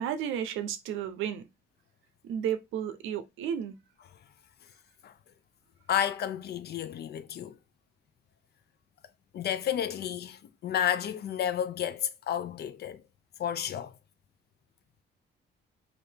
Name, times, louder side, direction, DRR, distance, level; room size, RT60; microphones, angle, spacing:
voice 1, 0.0-1.5 2.2-3.7, right 9 dB, 85° right, 0.5 m, -32 dB
voice 2, 5.9-7.6 9.3-13.0 13.4-13.9, left 9 dB, 55° left, 0.4 m, -31 dB
2.7 x 2.6 x 3.3 m
cardioid pair, 90°, 20 cm